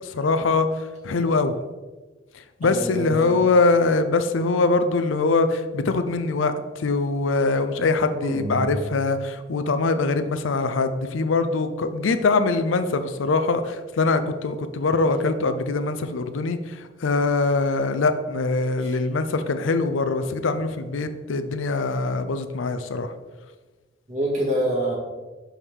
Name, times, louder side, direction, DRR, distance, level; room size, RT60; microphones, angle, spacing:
voice 1, 0.0-1.6 2.3-23.1, left 3 dB, 90° left, 10 dB, 0.5 m, -23 dB
voice 2, 2.6-3.4 8.2-8.7 18.8-19.0 24.1-25.0, right 1 dB, 40° right, -3 dB, 1.9 m, -26 dB
6.2 x 5.5 x 3.5 m, 1.2 s
head